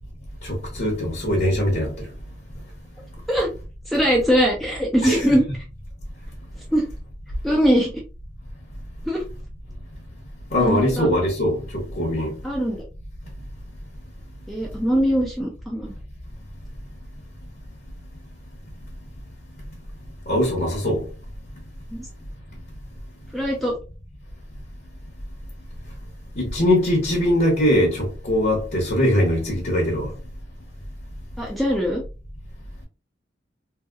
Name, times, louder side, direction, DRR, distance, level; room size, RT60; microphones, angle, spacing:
voice 1, 0.4-1.9 5.0-5.3 10.5-12.4 20.3-21.0 26.4-30.1, left 1 dB, 55° left, 0.9 m, -21 dB
voice 2, 3.9-5.4 6.7-6.9 7.4-7.9 9.1-9.2 10.6-11.1 12.4-12.8 14.5-15.9 21.9-22.1 23.3-23.7 31.4-32.0, equal, ahead, 0.4 m, -21 dB
2.8 x 2.7 x 2.3 m
head